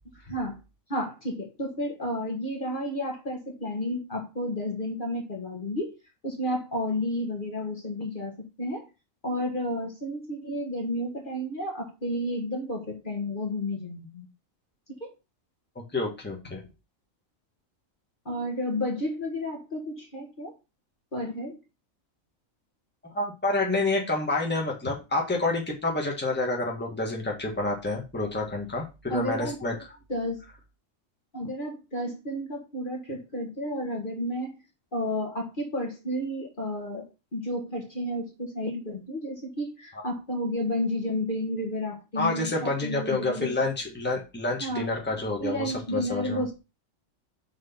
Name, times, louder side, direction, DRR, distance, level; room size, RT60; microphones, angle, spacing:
voice 1, 0.2-0.5 0.9-5.9 6.2-8.8 9.2-14.3 15.0-15.1 18.2-20.5 21.1-21.6 29.1-29.6 30.1-30.4 31.3-34.6 34.9-37.0 37.3-43.5 44.6-44.9 45.4-46.5, left 1 dB, 40° left, 0 dB, 1.7 m, -31 dB
voice 2, 15.9-16.6 23.0-29.8 42.1-46.5, left 2 dB, 10° left, -1 dB, 1.5 m, -28 dB
6.3 x 4.0 x 5.8 m, 0.28 s
omnidirectional pair, 1.4 m